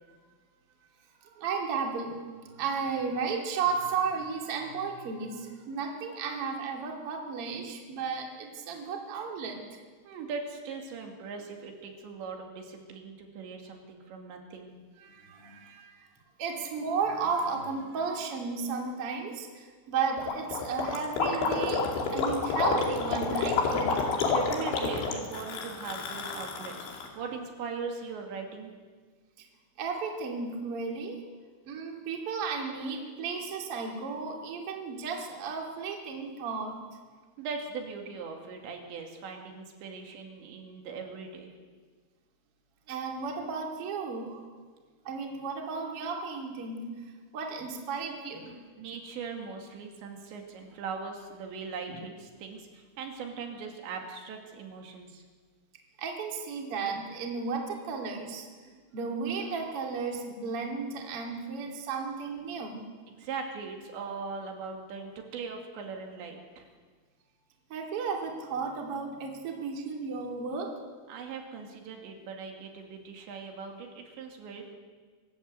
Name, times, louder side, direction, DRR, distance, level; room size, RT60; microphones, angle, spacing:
voice 1, 1.2-9.6 15.0-15.9 16.4-21.8 22.1-23.9 29.8-31.2 31.6-36.8 42.9-44.4 45.0-46.9 47.3-48.6 51.9-52.0 56.0-62.8 67.7-70.7, right 5 dB, 35° right, 1 dB, 2.9 m, -34 dB
voice 2, 10.0-14.8 24.2-28.7 37.4-41.5 48.8-55.2 63.2-66.7 71.1-74.7, right 5 dB, 75° right, 2 dB, 4.5 m, -40 dB
Gurgling, 20.2-27.1, left 4 dB, 90° left, 5.0 m, -29 dB
26.0 x 13.5 x 8.3 m, 1.5 s
omnidirectional pair, 5.2 m